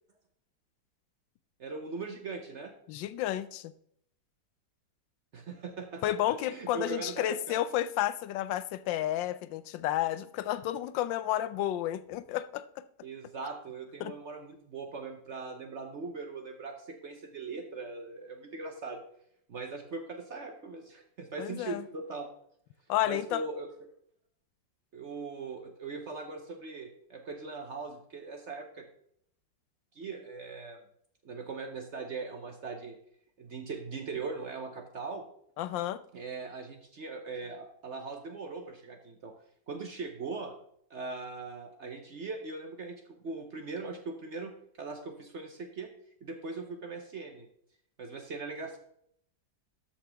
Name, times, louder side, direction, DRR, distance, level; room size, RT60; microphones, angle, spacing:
voice 1, 1.6-2.7 5.3-7.6 13.0-19.0 19.5-22.3 23.1-23.7 24.9-28.9 29.9-30.8 31.2-33.0 33.4-35.2 36.1-39.3 39.7-40.5 40.9-44.5 44.8-45.9 46.2-47.5 48.0-48.8, right 4 dB, 55° right, 5 dB, 0.9 m, -40 dB
voice 2, 2.9-3.7 6.0-12.6 14.0-14.1 21.4-21.8 22.9-23.4 35.6-36.0, left 13 dB, 85° left, 15 dB, 1.3 m, -31 dB
13.0 x 5.7 x 3.4 m, 0.69 s
omnidirectional pair, 2.0 m